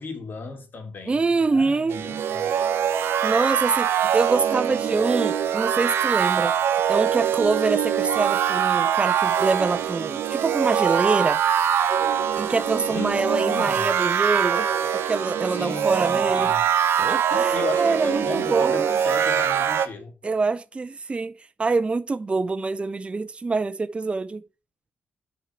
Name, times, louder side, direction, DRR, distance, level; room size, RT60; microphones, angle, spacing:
voice 1, 0.0-2.5 12.9-13.9 15.5-16.6 17.3-20.1, left 4 dB, 50° left, 2.6 m, -35 dB
voice 2, 1.1-2.0 3.2-6.5 6.9-11.4 12.4-14.7 15.1-16.5 17.0-18.9 20.2-21.3 21.6-24.4, right 3 dB, 25° right, 0.5 m, -25 dB
sound 1, 1.9-19.9, right 8 dB, 75° right, 0.8 m, -23 dB
7.9 x 4.6 x 5.9 m
cardioid pair, 75°, 4 cm